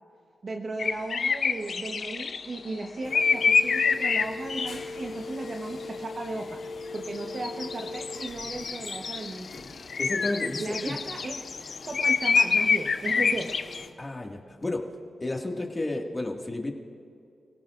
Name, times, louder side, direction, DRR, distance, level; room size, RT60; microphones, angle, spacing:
voice 1, 0.4-6.6 6.9-9.6 10.6-11.6 11.8-13.6, right 2 dB, 50° right, 1 dB, 1.1 m, -36 dB
sound 1, 0.8-2.6 3.1-4.8 7.0-13.8, left 5 dB, 60° left, 0.7 m, -26 dB
sound 2, 3.0-13.9, left 3 dB, 85° left, 2.3 m, -41 dB
voice 2, 10.0-11.0 14.0-14.9 15.2-16.7, left 2 dB, 25° left, 0 dB, 2.0 m, -32 dB
30.0 x 17.5 x 2.6 m, 2.4 s
wide cardioid pair, 95°, 0 cm